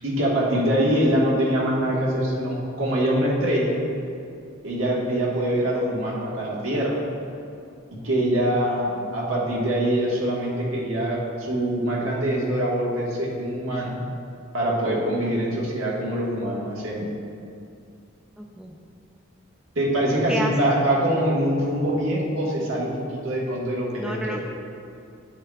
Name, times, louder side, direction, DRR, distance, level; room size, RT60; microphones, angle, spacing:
voice 1, 0.0-3.8 4.6-7.0 8.0-14.0 14.5-17.0 19.7-24.4, right 1 dB, 90° right, -4 dB, 1.5 m, -24 dB
voice 2, 18.4-18.7 20.1-20.7 24.0-24.4, equal, 5° right, 0 dB, 0.3 m, -31 dB
9.6 x 6.6 x 2.3 m, 2.5 s
head